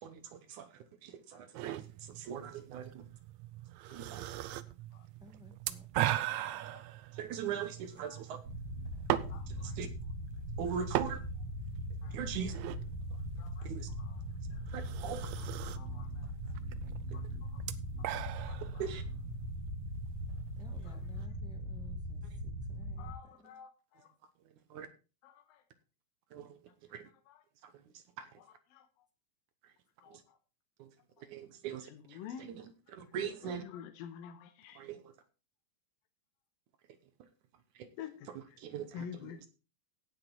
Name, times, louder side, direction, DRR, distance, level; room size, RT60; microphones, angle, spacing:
voice 1, 0.0-3.1 3.9-4.3 7.1-8.4 9.2-9.9 10.6-11.2 12.1-12.5 13.6-13.9 14.7-15.3 17.1-17.2 18.8-19.0 20.8-21.0 22.3-22.4 24.4-24.9 26.3-27.1 27.6-28.4 29.6-29.7 30.1-30.2 30.8-30.9 31.2-33.6 34.7-35.2 37.2-37.3 37.7-37.9 38.3-39.5, right 8 dB, 70° right, 9 dB, 2.2 m, -42 dB
sound 1, 1.5-21.3, right 14 dB, 85° right, 1.6 m, -40 dB
voice 2, 5.2-6.1 20.6-22.2 22.7-23.5, left 1 dB, 5° right, 3 dB, 0.9 m, -57 dB
voice 3, 6.5-6.8 8.1-8.2 9.3-9.8 12.0-12.2 13.4-13.7 14.0-14.2 14.5-14.6 15.8-16.2 17.1-17.6 18.0-18.1 18.5-18.6 20.9-21.0 23.0-24.1 25.2-25.6 28.7-28.9 30.0-30.2 31.9-32.5 33.7-34.8 38.0-38.1 38.9-39.5, left 8 dB, 85° left, 8 dB, 2.9 m, -49 dB
sound 2, 8.4-23.1, equal, 55° right, 2.8 m, -40 dB
17.0 x 6.1 x 4.4 m, 0.33 s
omnidirectional pair, 4.1 m